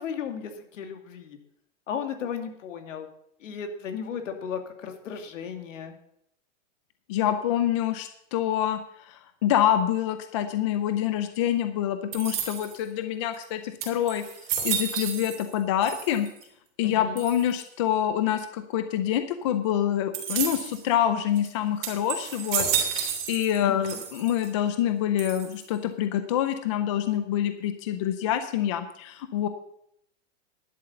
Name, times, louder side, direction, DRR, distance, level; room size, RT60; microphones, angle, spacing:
voice 1, 0.0-1.4 1.9-3.1 3.4-5.9 16.8-17.2 23.6-24.0, left 7 dB, 75° left, 6 dB, 2.4 m, -35 dB
voice 2, 7.1-8.8 9.1-14.2 14.6-16.3 16.8-22.7 23.3-29.5, left 11 dB, 25° left, 9 dB, 0.5 m, -26 dB
sound 1, 12.1-12.9 13.4-13.5 13.8-15.6 15.8-16.4 17.2-17.6 20.1-20.8 21.4-21.5 21.8-23.6 23.8-24.5 25.2-25.8, right 8 dB, 50° right, 3.2 m, -31 dB
11.0 x 7.6 x 7.0 m, 0.72 s
supercardioid pair, 175°, 38 cm